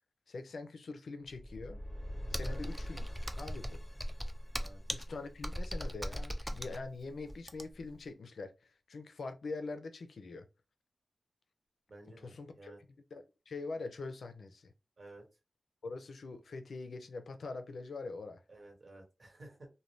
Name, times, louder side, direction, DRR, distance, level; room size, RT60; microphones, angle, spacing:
voice 1, 0.3-1.8 2.3-3.1 3.4-3.8 4.9-10.5 12.2-12.7 13.1-14.7 15.8-18.4, left 3 dB, 90° left, 0.4 m, -43 dB
magic wand, 1.3-6.3, equal, 10° left, 0.8 m, -46 dB
Computer keyboard, 2.3-7.9, equal, 5° right, 0.4 m, -39 dB
voice 2, 11.9-12.8 15.0-15.3 18.5-19.7, right 2 dB, 60° right, 1.2 m, -53 dB
2.5 x 2.2 x 3.1 m
wide cardioid pair, 85°, 0 cm